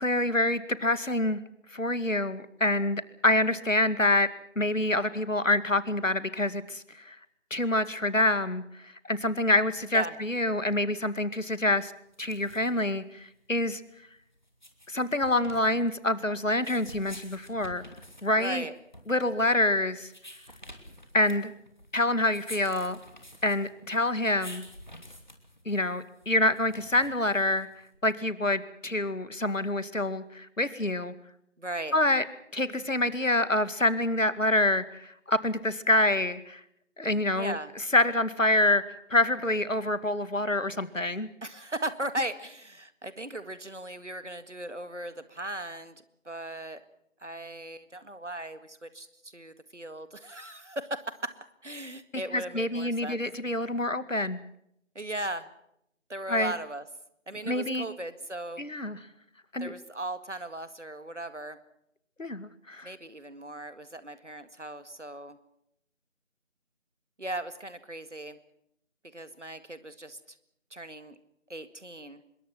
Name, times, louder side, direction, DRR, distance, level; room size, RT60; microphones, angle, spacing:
voice 1, 0.0-1.4 1.7-4.3 4.6-7.2 7.5-11.9 12.2-13.8 14.9-17.8 18.2-18.6 19.1-20.1 21.1-21.5 21.9-23.0 23.4-24.6 25.7-27.7 28.0-31.1 31.9-32.2 32.5-36.6 37.0-37.5 37.9-41.3 52.3-54.4 56.3-56.5 57.5-57.9 58.6-59.0 59.5-59.7 62.2-62.9, left 1 dB, 90° left, 14 dB, 2.3 m, -26 dB
sound 1, 12.1-28.0, equal, 35° left, 2.8 m, -49 dB
voice 2, 18.4-18.7 31.6-32.0 37.3-37.7 41.4-46.0 46.2-46.8 47.2-51.3 51.6-53.2 55.0-55.5 56.1-56.9 57.3-58.7 59.6-61.6 62.8-65.4 67.2-68.4 69.1-70.2 70.7-71.2 71.5-72.2, right 1 dB, 70° right, 12 dB, 2.1 m, -37 dB
25.5 x 22.0 x 6.0 m, 0.76 s
figure-of-eight pair, 180°, 38 cm